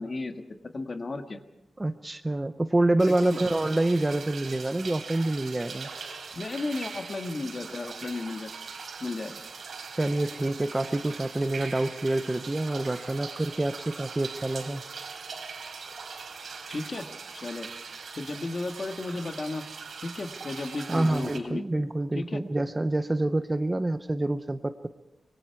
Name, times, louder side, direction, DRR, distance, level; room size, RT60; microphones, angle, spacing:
voice 1, 0.0-1.4 3.1-3.4 6.3-8.5 9.0-9.4 16.7-17.1 17.3-17.7 18.2-19.6 20.0-21.6 22.1-22.4, left 2 dB, 35° left, 6 dB, 1.5 m, -34 dB
voice 2, 1.8-5.9 10.0-14.8 20.9-24.9, right 2 dB, 15° right, 10 dB, 0.6 m, -27 dB
sound 1, 3.0-21.4, right 5 dB, 65° right, 3.5 m, -41 dB
25.0 x 23.0 x 4.7 m, 0.87 s
wide cardioid pair, 165°, 0 cm